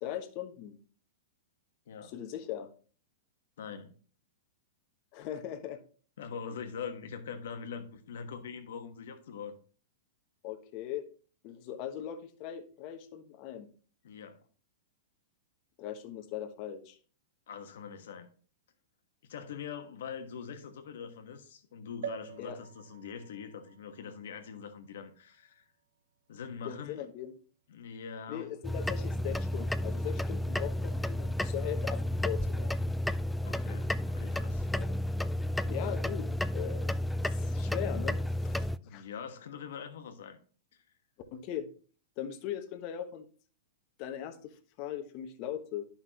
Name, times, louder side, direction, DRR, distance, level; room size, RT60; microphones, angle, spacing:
voice 1, 0.0-0.8 2.0-2.7 5.1-5.8 10.4-11.0 11.4-13.7 15.8-17.0 22.4-22.6 26.6-27.3 28.3-32.7 34.7-35.0 35.6-36.9 37.2-39.1 41.3-41.7 42.2-43.3 44.0-45.9, left 10 dB, 45° left, 1.2 m, -39 dB
voice 2, 3.6-3.9 6.2-9.6 14.0-14.4 17.5-18.3 19.2-25.6 26.3-27.1 27.7-28.5 33.4-34.7 38.7-40.4 40.7-40.8, left 6 dB, 70° left, 1.3 m, -43 dB
sound 1, 22.0-25.7 26.3-26.4 26.6-26.7, right 9 dB, 70° right, 0.5 m, -46 dB
sound 2, 28.6-38.8, left 1 dB, 5° left, 0.3 m, -32 dB
11.0 x 5.7 x 2.9 m
hypercardioid pair, 110°, 0 cm